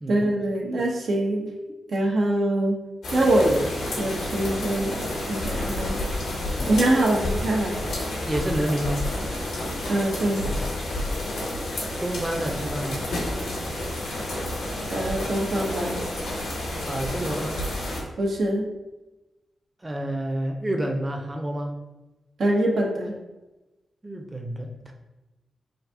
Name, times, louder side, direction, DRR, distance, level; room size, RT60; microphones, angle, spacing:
voice 1, 0.1-1.5 1.9-2.8 3.1-3.6 3.9-6.0 6.7-7.7 9.9-10.4 14.9-16.0 18.2-18.7 22.4-23.1, right 1 dB, 70° right, -2 dB, 1.0 m, -24 dB
sound 1, 3.0-18.0, left 1 dB, 85° left, 1.3 m, -30 dB
voice 2, 8.2-9.0 12.0-13.0 16.9-17.6 19.8-21.8 24.0-24.9, right 1 dB, 20° right, 2 dB, 0.8 m, -29 dB
4.0 x 2.6 x 4.6 m, 1.0 s
supercardioid pair, 40°, 0 cm